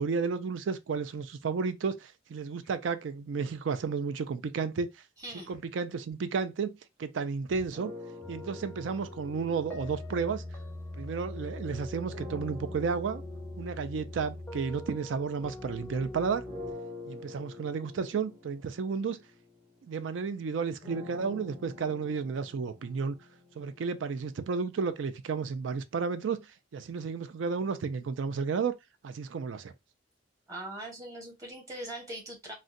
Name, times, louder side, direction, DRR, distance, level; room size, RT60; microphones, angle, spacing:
voice 1, 0.0-4.9 5.5-7.9 8.3-10.4 10.9-13.2 13.6-16.4 17.1-19.2 19.8-23.2 23.6-26.5 26.7-28.7 29.0-29.7, right 5 dB, 85° right, 0.4 m, -32 dB
voice 2, 5.2-5.5 30.5-32.5, right 1 dB, 20° right, 1.1 m, -41 dB
sound 1, 7.7-11.3 12.1-15.9 16.4-24.4, left 3 dB, 35° right, 1.5 m, -48 dB
sound 2, 8.2-16.7, left 1 dB, 10° left, 0.5 m, -42 dB
3.7 x 2.1 x 2.5 m
head